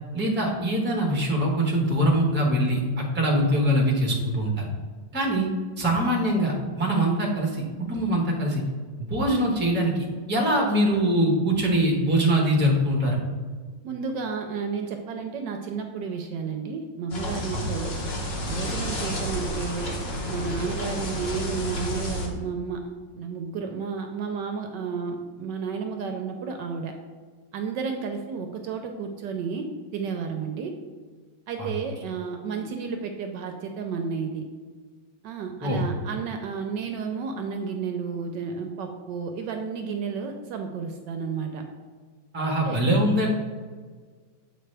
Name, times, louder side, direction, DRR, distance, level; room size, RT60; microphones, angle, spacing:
voice 1, 0.1-4.7 5.1-5.5 5.8-7.6 7.9-8.6 9.0-13.2 17.5-17.7 31.6-31.7 35.6-35.8 42.3-43.3, right 1 dB, 10° right, -2 dB, 0.8 m, -23 dB
voice 2, 13.8-17.9 18.4-20.0 20.3-22.8 23.1-26.9 27.5-29.7 29.9-30.7 31.5-34.5 35.2-41.6 42.6-42.8, right 5 dB, 75° right, 4 dB, 1.1 m, -32 dB
sound 1, 17.1-22.3, left 1 dB, 40° left, 1.0 m, -31 dB
7.7 x 4.9 x 3.3 m, 1.5 s
omnidirectional pair, 2.1 m